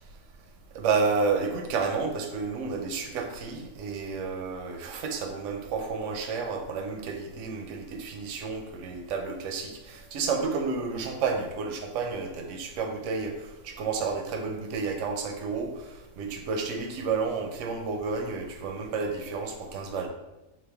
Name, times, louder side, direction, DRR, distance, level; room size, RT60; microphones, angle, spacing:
voice 1, 0.7-15.8 16.2-20.1, right 4 dB, 65° right, 4 dB, 0.8 m, -31 dB
4.0 x 2.5 x 3.4 m, 0.98 s
omnidirectional pair, 1.6 m